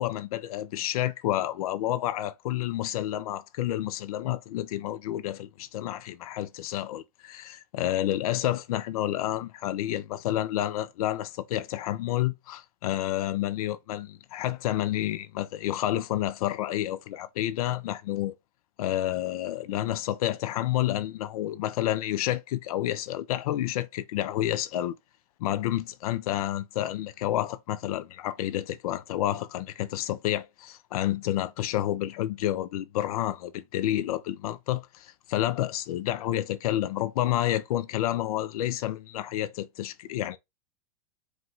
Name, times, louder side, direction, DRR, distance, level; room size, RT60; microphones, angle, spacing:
voice 1, 0.0-18.3 18.8-24.9 25.4-40.4, left 13 dB, 65° left, 0.6 m, -29 dB
4.6 x 2.2 x 3.8 m
hypercardioid pair, 95°, 20 cm